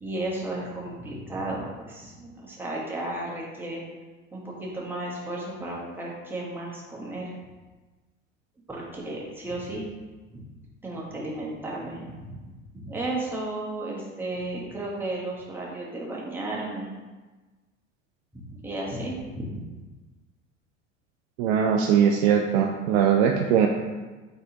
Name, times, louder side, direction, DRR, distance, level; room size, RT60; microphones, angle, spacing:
voice 1, 0.0-3.8 4.3-7.3 8.7-9.8 10.3-10.4 10.8-16.9 18.3-19.6, right 2 dB, 5° right, -5 dB, 1.0 m, -34 dB
voice 2, 21.4-23.7, right 8 dB, 50° right, 2 dB, 0.4 m, -21 dB
4.0 x 3.7 x 2.8 m, 1.2 s
figure-of-eight pair, 75°, 39 cm